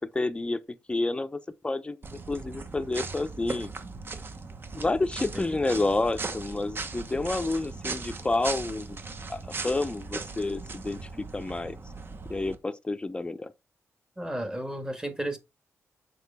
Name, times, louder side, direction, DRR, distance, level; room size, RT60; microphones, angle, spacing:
voice 1, 0.1-0.6 0.9-2.0 2.3-3.7 4.7-9.0 9.3-11.8 12.3-13.5, left 2 dB, 15° left, 0.6 m, -29 dB
sound 1, 2.0-12.5, right 3 dB, 40° right, 1.1 m, -38 dB
voice 2, 14.2-15.4, right 1 dB, 10° right, 1.4 m, -33 dB
6.5 x 4.4 x 3.4 m
wide cardioid pair, 115°, 6 cm